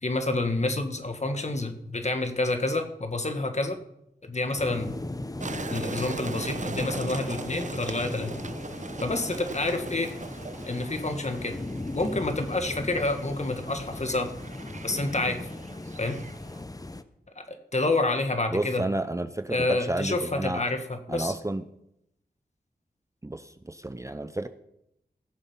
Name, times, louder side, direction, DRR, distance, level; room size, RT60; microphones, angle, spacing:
voice 1, 0.0-3.8 4.2-4.9 5.7-8.4 9.0-10.1 10.6-11.6 11.9-14.3 14.8-15.5 16.0-16.2 17.3-18.8 19.5-21.3, left 2 dB, 40° left, 7 dB, 1.7 m, -28 dB
sound 1, 4.6-17.0, left 2 dB, 20° left, 0.8 m, -38 dB
sound 2, 5.4-16.6, right 4 dB, 45° right, 0.8 m, -40 dB
voice 2, 18.5-20.6 21.1-21.6 23.2-24.5, right 2 dB, 20° right, 10 dB, 0.6 m, -31 dB
16.0 x 7.1 x 5.7 m, 0.79 s
wide cardioid pair, 60°, 17 cm